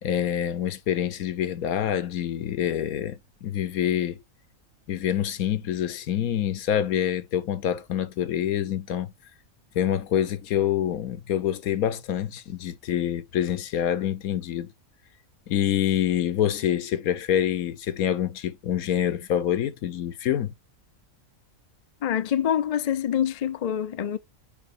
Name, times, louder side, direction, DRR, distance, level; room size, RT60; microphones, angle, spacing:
voice 1, 0.0-4.2 4.9-9.1 9.7-14.7 15.5-20.5, left 10 dB, 90° left, 1.3 m, -26 dB
voice 2, 22.0-24.2, left 9 dB, 60° left, 0.4 m, -25 dB
8.8 x 5.2 x 2.5 m
omnidirectional pair, 1.5 m